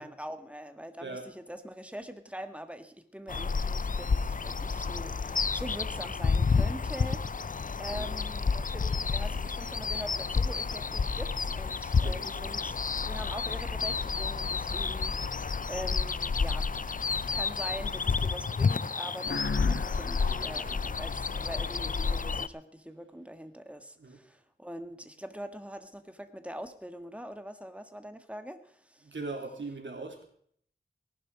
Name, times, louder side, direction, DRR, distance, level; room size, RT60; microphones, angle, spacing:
voice 1, 0.0-16.8 17.2-29.1, equal, 5° right, 9 dB, 1.6 m, -43 dB
sound 1, 3.3-22.5, left 5 dB, 45° left, 0.5 m, -30 dB
voice 2, 11.9-12.5 20.2-20.8 24.0-24.2 29.0-30.2, right 3 dB, 80° right, 2 dB, 3.6 m, -41 dB
sound 2, 19.2-21.9, left 4 dB, 70° left, 1.0 m, -39 dB
19.0 x 11.0 x 4.9 m, 0.62 s
wide cardioid pair, 65°, 19 cm